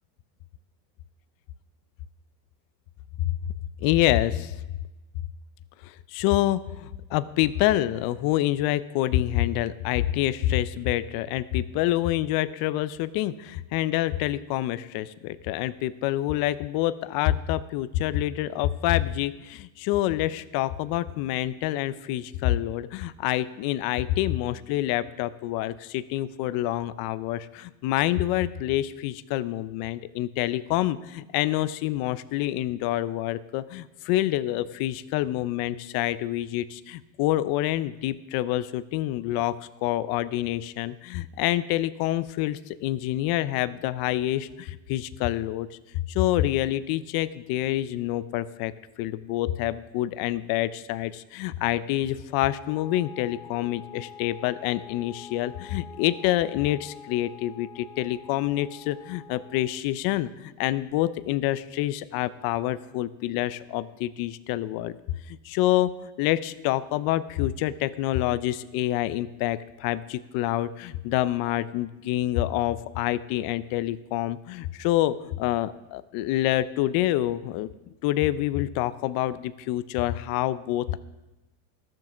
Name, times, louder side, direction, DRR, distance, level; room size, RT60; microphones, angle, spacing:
voice 1, 3.8-4.6 5.8-45.8 46.1-48.7 49.0-65.0 65.3-77.7 78.0-81.0, left 14 dB, 50° left, 15 dB, 0.6 m, -27 dB
Wind instrument woodwind instrument, 52.4-59.8, left 6 dB, 5° left, 0.6 m, -46 dB
13.5 x 7.7 x 5.9 m, 1.0 s
supercardioid pair, 125°, 46 cm